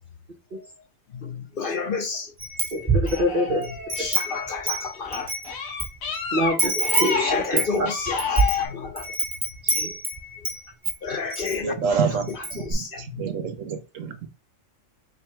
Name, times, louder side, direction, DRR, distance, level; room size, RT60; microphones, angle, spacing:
voice 1, 1.1-2.3 3.5-5.3 6.7-9.2 9.8-9.9 10.4-10.5 11.0-12.0 12.6-13.3, left 4 dB, 55° left, 0.7 m, -31 dB
Wind chime, 2.4-3.2 3.6-5.9 6.1-6.2 6.6-10.6 10.8-11.6 11.9-12.0 12.3-12.7, right 2 dB, 15° right, 1.4 m, -26 dB
voice 2, 2.8-3.6 6.3-6.7 7.0-7.9 9.8-9.9, left 1 dB, 45° right, 1.0 m, -25 dB
sound 1, 3.0-4.4 4.9-8.7, left 5 dB, 80° left, 1.4 m, -29 dB
voice 3, 11.6-14.3, right 5 dB, 75° right, 1.2 m, -28 dB
4.9 x 2.3 x 4.4 m
omnidirectional pair, 1.4 m